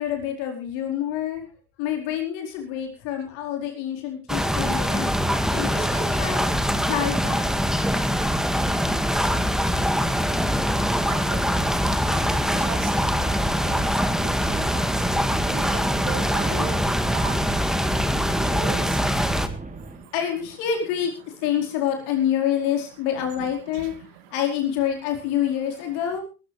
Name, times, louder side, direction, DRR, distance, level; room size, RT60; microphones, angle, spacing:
voice 1, 0.0-1.5 1.8-5.1 5.5-7.5 16.3-16.7 20.1-21.1 21.4-23.9 24.3-26.2, left 9 dB, 75° left, 2 dB, 4.8 m, -27 dB
sound 1, 4.3-19.5, equal, ahead, 2.0 m, -23 dB
voice 2, 11.1-11.4 12.7-12.8 13.1-13.3 13.6-13.8 14.7-14.8 15.5-16.7 17.1-17.3 18.5-18.8, right 11 dB, 75° right, 10 dB, 2.4 m, -35 dB
sound 2, 12.2-20.1, right 3 dB, 15° right, 2.8 m, -37 dB
21.5 x 13.5 x 3.4 m, 0.33 s
hypercardioid pair, 60°, 46 cm